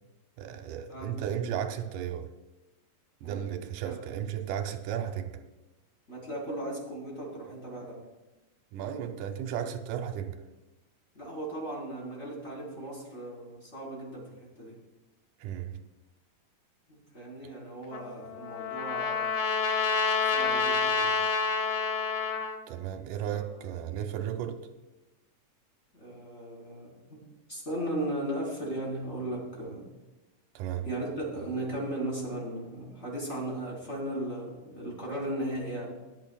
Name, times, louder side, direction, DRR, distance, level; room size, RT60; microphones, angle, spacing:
voice 1, 0.4-2.3 3.2-5.4 8.7-10.4 15.4-15.8 22.7-24.6 30.6-30.9, right 9 dB, 75° right, 2.1 m, -34 dB
voice 2, 6.1-8.0 11.1-14.8 16.9-19.3 20.2-21.1 23.3-23.4 25.9-27.2 27.5-29.8 30.8-36.0, right 1 dB, 20° left, 3.9 m, -36 dB
Trumpet, 17.9-22.6, left 5 dB, 80° left, 1.5 m, -28 dB
19.5 x 11.0 x 2.3 m
omnidirectional pair, 4.0 m